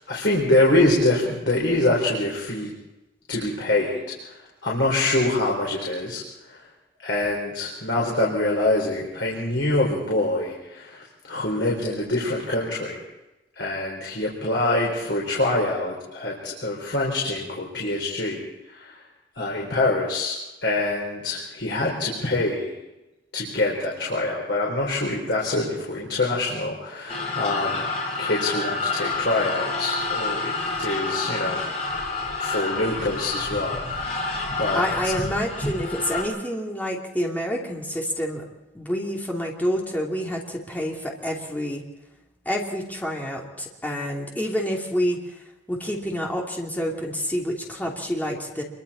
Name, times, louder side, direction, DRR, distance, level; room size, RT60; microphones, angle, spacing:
voice 1, 0.1-2.7 3.3-6.6 7.0-13.0 13.6-19.0 19.3-20.3 20.6-22.7 23.3-27.8 28.2-30.5 30.8-31.6 32.4-34.3 34.6-34.8, left 2 dB, 75° left, -3 dB, 4.4 m, -25 dB
sound 1, 27.1-36.2, left 3 dB, 40° left, 5.8 m, -28 dB
voice 2, 34.7-38.4 38.7-41.8 42.4-45.2 45.7-48.6, equal, 10° left, -2 dB, 3.1 m, -28 dB
26.5 x 23.5 x 4.4 m, 0.99 s
head